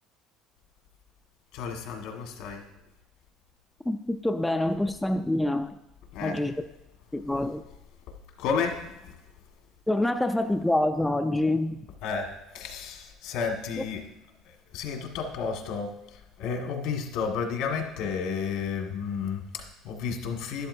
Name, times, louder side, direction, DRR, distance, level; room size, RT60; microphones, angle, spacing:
voice 1, 1.5-2.7 6.1-6.4 8.4-8.8 12.0-12.3 12.5-14.0 14.4-20.7, left 6 dB, 70° left, 3 dB, 1.7 m, -32 dB
voice 2, 3.9-5.8 6.2-6.6 7.1-7.6 9.9-11.8, left 1 dB, 5° left, 7 dB, 0.3 m, -26 dB
11.5 x 11.5 x 2.7 m, 0.93 s
cardioid pair, 165°, 0 cm